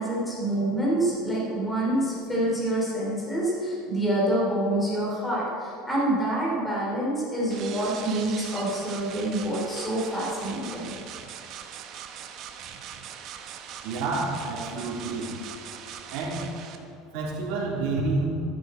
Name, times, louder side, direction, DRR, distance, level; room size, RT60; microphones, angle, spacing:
voice 1, 0.0-10.9, right 1 dB, 10° left, -5 dB, 3.3 m, -27 dB
sound 1, 7.5-16.8, right 8 dB, 40° right, 1.0 m, -41 dB
voice 2, 13.8-15.3 16.1-16.4 17.1-18.3, right 3 dB, 60° right, -4 dB, 3.6 m, -29 dB
13.5 x 12.0 x 4.4 m, 2.5 s
cardioid pair, 165°, 0 cm